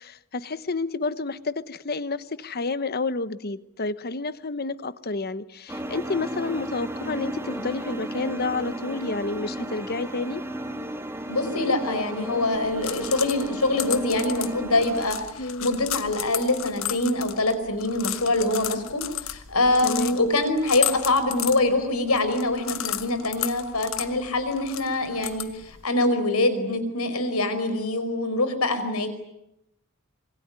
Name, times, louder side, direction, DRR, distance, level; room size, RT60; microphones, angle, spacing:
voice 1, 0.0-10.4 15.4-15.7 19.8-20.4, left 3 dB, 45° left, 14 dB, 1.1 m, -30 dB
sound 1, 5.7-15.1, right 1 dB, 10° right, 2.1 m, -34 dB
voice 2, 11.3-29.1, left 2 dB, 90° left, 11 dB, 5.0 m, -24 dB
sound 2, 12.5-25.9, left 12 dB, 65° left, 1.4 m, -34 dB
26.5 x 23.0 x 9.7 m, 0.84 s
head